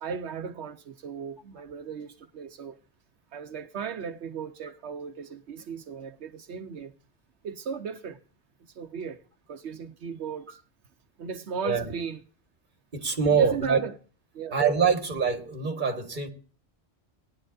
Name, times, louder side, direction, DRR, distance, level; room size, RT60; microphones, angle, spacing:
voice 1, 0.0-2.8 3.3-6.9 7.4-8.2 8.6-9.2 9.5-10.6 11.2-12.2 13.2-13.9 14.3-14.6, right 7 dB, 80° right, 1.0 m, -36 dB
voice 2, 12.9-13.8 14.5-16.3, right 6 dB, 45° right, 1.8 m, -24 dB
18.0 x 11.0 x 2.4 m
omnidirectional pair, 1.1 m